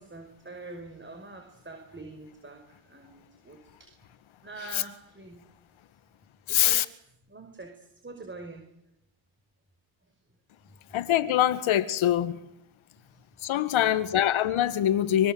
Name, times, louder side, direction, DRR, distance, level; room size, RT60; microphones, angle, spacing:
voice 1, 0.0-4.1 4.4-5.4 6.5-6.9 7.3-8.6 13.1-13.2 13.7-14.1, right 3 dB, 25° right, 5.5 m, -45 dB
voice 2, 6.5-6.8 10.9-12.4 13.4-15.3, left 11 dB, 70° left, 2.0 m, -24 dB
25.0 x 23.5 x 8.1 m
cardioid pair, 85°, 49 cm